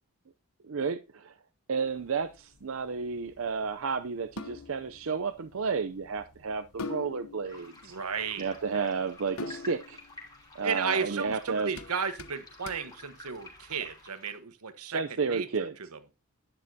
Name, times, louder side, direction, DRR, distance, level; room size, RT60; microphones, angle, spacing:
voice 1, 0.6-1.3 1.7-7.9 8.4-10.0 10.6-11.7 14.9-15.7, right 5 dB, 65° right, 0.5 m, -32 dB
sound 1, 1.8-14.0, left 4 dB, 75° left, 0.8 m, -46 dB
sound 2, 7.4-14.4, left 2 dB, 15° left, 3.0 m, -50 dB
voice 2, 7.8-8.5 10.6-15.5 15.8-16.0, right 6 dB, 90° right, 1.2 m, -34 dB
11.0 x 9.9 x 2.7 m
head